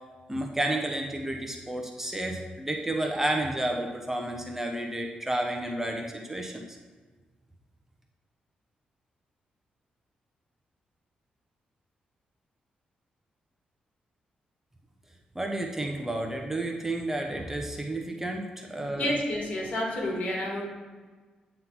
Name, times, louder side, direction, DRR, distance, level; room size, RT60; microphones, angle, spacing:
voice 1, 0.3-6.8 15.3-19.2, right 1 dB, 15° right, 2 dB, 0.9 m, -31 dB
voice 2, 19.0-20.6, left 1 dB, 55° left, -2 dB, 2.4 m, -29 dB
9.4 x 3.9 x 5.9 m, 1.4 s
cardioid pair, 85°, 3 cm